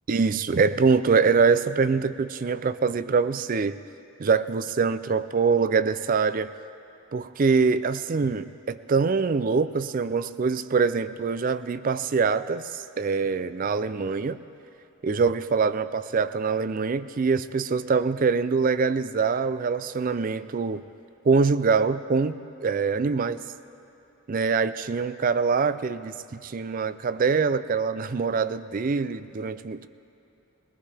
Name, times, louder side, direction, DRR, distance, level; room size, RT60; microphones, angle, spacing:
voice 1, 0.1-3.8 4.2-6.5 7.1-14.4 15.0-20.8 21.2-23.4 24.3-29.9, right 5 dB, 40° right, 14 dB, 0.4 m, -24 dB
20.5 x 20.5 x 3.4 m, 2.9 s
head